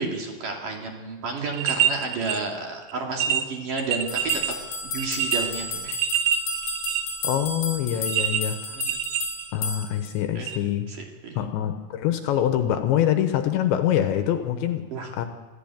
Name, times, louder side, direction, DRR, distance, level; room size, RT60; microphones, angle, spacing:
voice 1, 0.0-4.6 4.8-6.0 8.3-8.4 8.7-9.0 10.4-10.6 10.9-11.0 11.2-11.5 14.9-15.1, right 3 dB, 50° right, 1 dB, 3.5 m, -31 dB
sound 1, 1.4-2.4 2.8-2.9 3.2-4.5 5.0-7.2 8.1-9.8 10.5-10.6, right 9 dB, 90° right, 3.9 m, -26 dB
sound 2, 4.1-10.1, left 2 dB, 45° left, 3.8 m, -32 dB
voice 2, 7.2-8.6 9.5-10.9 11.4-14.8 15.1-15.3, left 10 dB, 75° left, 8 dB, 3.0 m, -24 dB
25.5 x 15.0 x 8.9 m, 1.3 s
omnidirectional pair, 5.7 m